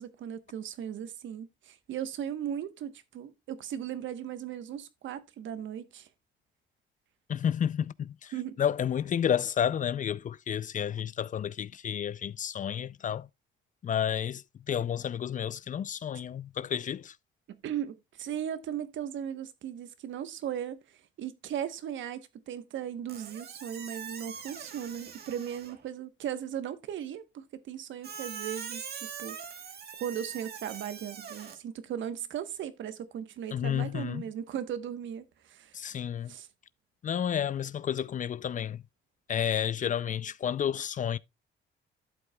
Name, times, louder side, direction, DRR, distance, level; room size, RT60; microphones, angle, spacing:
voice 1, 0.0-6.1 8.3-8.6 17.5-29.4 30.0-35.8 36.3-36.5, right 9 dB, 75° right, 1.1 m, -37 dB
voice 2, 7.3-8.3 8.6-13.3 13.8-17.2 33.5-34.2 35.7-36.3 37.0-38.8 39.3-41.2, left 9 dB, 40° left, 0.4 m, -31 dB
Squeak, 23.1-25.9 28.0-31.6, right 7 dB, 55° right, 1.5 m, -42 dB
12.0 x 7.8 x 2.3 m
cardioid pair, 90°, 20 cm